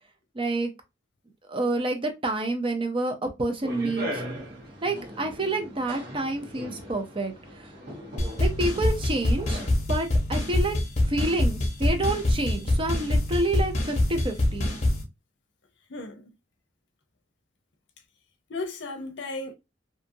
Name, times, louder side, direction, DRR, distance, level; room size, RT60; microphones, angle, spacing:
voice 1, 0.3-0.7 1.5-4.2 4.8-7.7 8.4-10.8 11.1-14.7, right 2 dB, 30° right, 0.6 m, -28 dB
sound 1, 3.6-9.7, equal, 55° right, 1.3 m, -39 dB
sound 2, 8.2-15.0, left 1 dB, 40° left, 0.9 m, -25 dB
voice 2, 15.9-16.3 18.5-19.5, left 2 dB, 70° left, 0.6 m, -35 dB
2.8 x 2.5 x 2.6 m
head